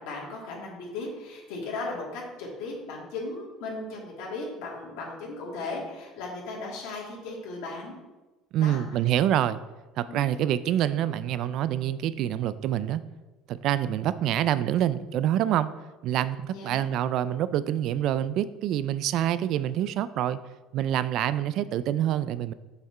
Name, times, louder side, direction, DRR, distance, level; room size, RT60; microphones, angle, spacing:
voice 1, 0.0-8.0 8.6-8.8 10.1-10.2 16.5-16.8, left 3 dB, 80° left, -2 dB, 2.0 m, -36 dB
voice 2, 8.5-9.6 10.0-13.0 13.5-15.7 16.0-20.4 20.7-22.5, right 11 dB, 60° right, 15 dB, 0.3 m, -26 dB
5.8 x 5.7 x 4.3 m, 1.1 s
cardioid pair, 120°, 0 cm